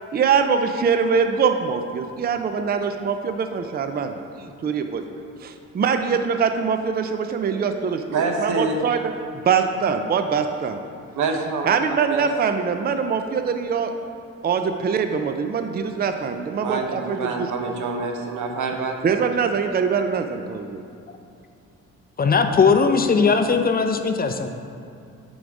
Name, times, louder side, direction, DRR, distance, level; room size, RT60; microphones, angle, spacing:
voice 1, 0.1-9.1 9.4-10.8 11.6-13.9 14.4-17.8 19.0-20.8, right 6 dB, 30° right, 7 dB, 0.5 m, -23 dB
voice 2, 8.1-8.8 11.2-12.3 16.6-18.9, right 4 dB, 75° right, 3 dB, 1.0 m, -26 dB
voice 3, 22.2-24.5, left 5 dB, 30° left, 6 dB, 0.5 m, -19 dB
8.4 x 4.0 x 4.8 m, 2.5 s
cardioid pair, 90°, 30 cm